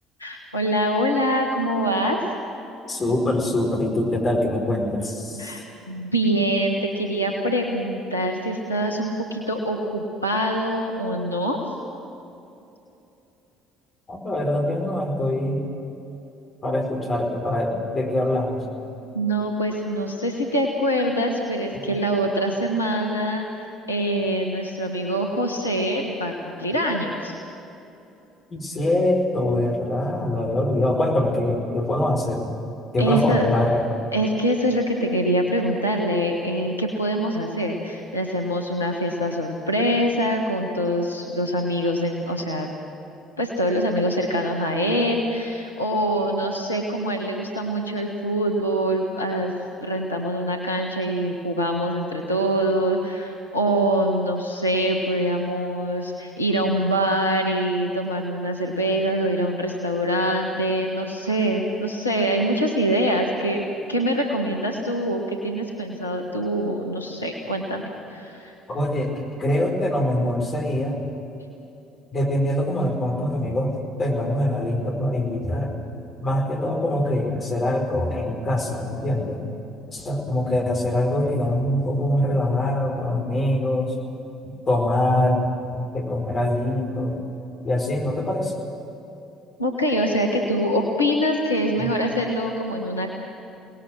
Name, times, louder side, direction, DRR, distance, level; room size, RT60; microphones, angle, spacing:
voice 1, 0.2-2.2 5.4-11.6 19.1-27.3 33.0-33.5 34.1-42.7 43.4-49.5 49.8-63.6 63.9-67.8 68.1-68.5 89.6-93.1, equal, 90° left, 1 dB, 1.4 m, -24 dB
voice 2, 2.9-5.5 14.1-15.7 16.6-18.6 28.5-32.5 32.9-33.8 68.7-71.0 72.1-75.7 76.2-79.4 79.9-83.9 84.4-85.4 85.7-87.2 87.6-88.5 91.8-91.9, left 1 dB, 35° left, 2 dB, 4.9 m, -24 dB
29.0 x 19.0 x 6.4 m, 2.9 s
figure-of-eight pair, 55°, 0 cm